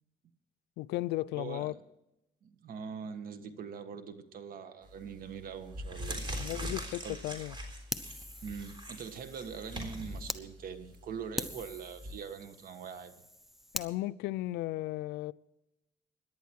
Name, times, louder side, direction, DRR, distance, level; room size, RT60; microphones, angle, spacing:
voice 1, 0.8-1.7 6.4-7.5 13.7-15.3, left 17 dB, 85° left, 0.5 m, -35 dB
voice 2, 1.3-1.8 2.4-6.4 7.0-7.2 8.4-13.2, right 6 dB, 60° right, 1.6 m, -43 dB
sound 1, 4.9-5.1 5.6-12.1, equal, 30° right, 3.6 m, -41 dB
Fire, 7.9-10.4 10.9-11.0 11.4-13.9, equal, ahead, 0.9 m, -43 dB
18.0 x 11.0 x 4.7 m
cardioid pair, 110°, 17 cm